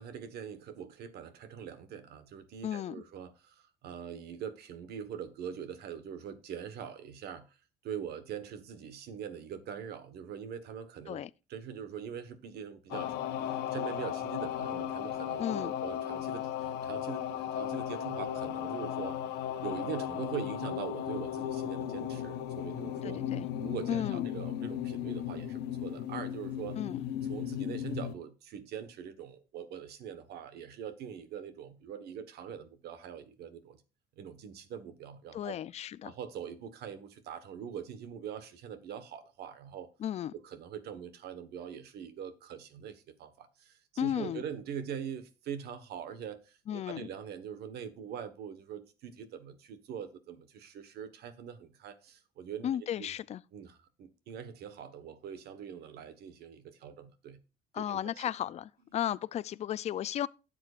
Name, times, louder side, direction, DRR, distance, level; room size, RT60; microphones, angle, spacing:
voice 1, 0.0-7.5 7.8-11.2 11.5-13.1 13.4-19.2 19.6-23.2 23.6-26.8 27.3-33.8 34.2-35.6 36.0-39.9 40.4-52.7 52.9-53.1 53.5-57.4 57.8-58.2, right 8 dB, 70° right, 1.3 m, -43 dB
voice 2, 2.6-3.0 11.1-11.3 15.4-15.7 23.0-23.5 23.9-24.3 26.8-27.0 35.3-36.1 40.0-40.3 44.0-44.4 46.7-47.1 52.6-53.4 57.7-60.3, left 10 dB, 40° left, 0.4 m, -34 dB
sound 1, 12.9-28.2, left 10 dB, 85° left, 1.0 m, -36 dB
12.5 x 7.7 x 2.5 m
cardioid pair, 110°, 17 cm